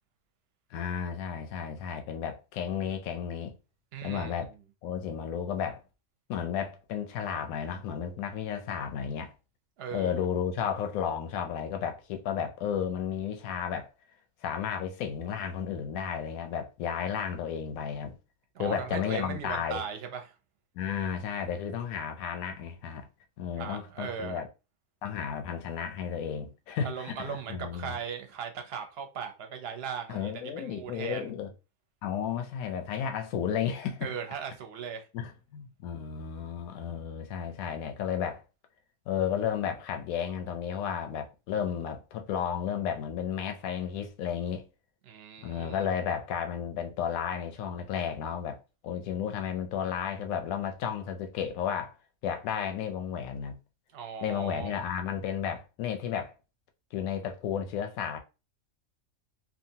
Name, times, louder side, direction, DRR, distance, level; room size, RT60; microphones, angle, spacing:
voice 1, 0.7-3.5 4.0-4.5 4.8-5.8 6.3-9.3 9.9-13.9 14.4-18.2 18.6-19.8 20.7-23.1 23.4-24.5 25.0-27.9 30.1-31.5 32.0-34.1 35.1-38.4 39.1-44.7 45.4-52.0 52.2-53.6 54.2-56.3 56.9-58.2, left 8 dB, 85° left, 1.0 m, -33 dB
voice 2, 3.9-4.6 9.8-10.3 18.5-20.3 23.6-24.4 26.8-31.3 34.0-35.1 45.1-45.9 53.9-54.8, right 7 dB, 60° right, 0.7 m, -38 dB
2.8 x 2.3 x 2.7 m
omnidirectional pair, 1.4 m